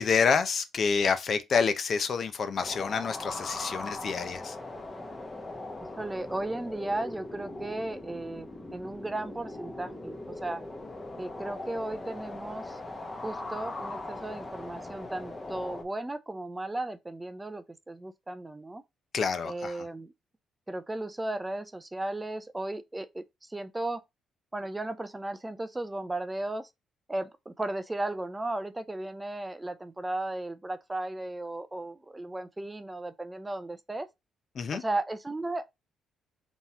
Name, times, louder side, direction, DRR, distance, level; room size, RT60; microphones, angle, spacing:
voice 1, 0.0-4.5 19.1-19.8 34.6-34.8, left 5 dB, 50° left, 0.6 m, -28 dB
sound 1, 2.6-15.8, left 2 dB, 20° left, 1.0 m, -40 dB
voice 2, 5.9-10.6 11.2-12.8 13.2-18.8 19.4-20.1 20.7-24.0 24.5-26.7 27.1-34.1 34.7-35.6, right 2 dB, 15° right, 0.5 m, -35 dB
3.6 x 3.0 x 4.1 m
cardioid pair, 90°, 0 cm